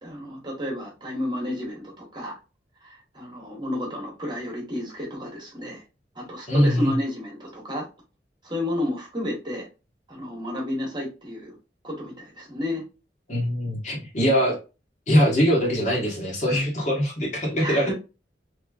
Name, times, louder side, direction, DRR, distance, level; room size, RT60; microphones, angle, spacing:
voice 1, 0.0-2.4 2.8-5.8 6.1-7.9 8.4-9.7 10.1-11.6 11.8-12.8 17.6-17.9, left 1 dB, 25° right, -1 dB, 1.2 m, -31 dB
voice 2, 6.5-6.9 13.3-14.6 15.1-17.9, equal, 40° left, -2 dB, 1.3 m, -22 dB
3.2 x 3.0 x 2.3 m, 0.30 s
head